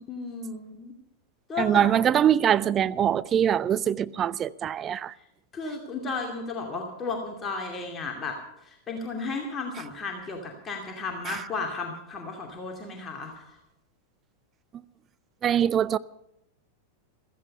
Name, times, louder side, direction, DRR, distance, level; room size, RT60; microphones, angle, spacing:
voice 1, 0.1-0.9 1.5-1.9 5.5-8.4 8.6-13.6, left 4 dB, 20° left, 2.6 m, -34 dB
voice 2, 1.6-5.1 11.3-11.4 15.4-16.0, right 9 dB, 25° right, 0.5 m, -23 dB
16.0 x 14.5 x 5.4 m
figure-of-eight pair, 90°, 0 cm